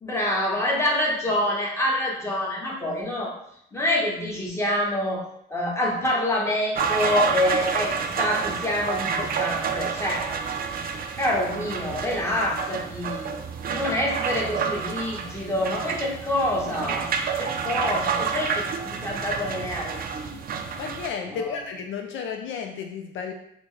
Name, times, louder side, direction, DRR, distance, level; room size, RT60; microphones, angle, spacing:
voice 1, 0.0-3.3 3.7-5.2 5.5-10.2 11.2-13.3 13.7-17.1 17.4-20.3 21.3-21.5, left 1 dB, 15° left, -3 dB, 1.1 m, -26 dB
sound 1, 6.8-21.1, right 6 dB, 50° right, 0.4 m, -29 dB
voice 2, 20.8-23.3, left 6 dB, 75° left, 4 dB, 0.4 m, -33 dB
4.3 x 2.1 x 3.2 m, 0.75 s
cardioid pair, 90°, 20 cm